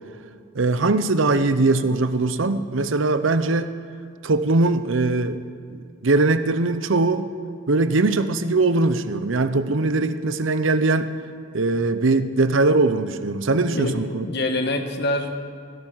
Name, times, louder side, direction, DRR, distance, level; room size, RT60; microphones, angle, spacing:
voice 1, 0.5-3.7 4.2-5.4 5.7-7.3 7.7-11.1 11.5-14.3, right 3 dB, 70° right, 11 dB, 0.7 m, -21 dB
voice 2, 13.6-14.0 14.2-15.3, left 2 dB, 55° left, 5 dB, 1.4 m, -25 dB
15.5 x 12.0 x 6.3 m, 2.3 s
head